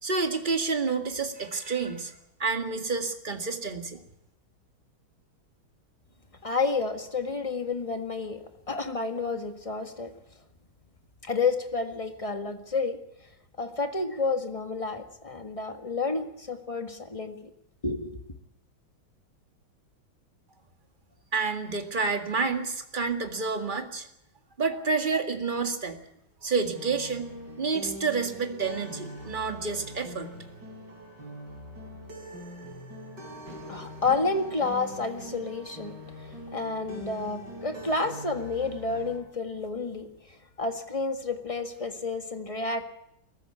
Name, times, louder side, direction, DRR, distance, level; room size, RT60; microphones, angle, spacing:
voice 1, 0.0-4.0 21.3-24.1 24.6-26.0 26.4-27.3 27.6-30.3, right 4 dB, 25° right, 6 dB, 2.0 m, -29 dB
voice 2, 6.4-10.1 11.2-13.0 13.6-17.4 17.8-18.2 33.6-36.0 36.2-40.1 40.6-42.8, left 3 dB, 15° left, 7 dB, 1.6 m, -30 dB
sound 1, 26.7-39.2, equal, 50° right, 5.0 m, -43 dB
22.0 x 14.5 x 9.8 m, 0.80 s
omnidirectional pair, 2.3 m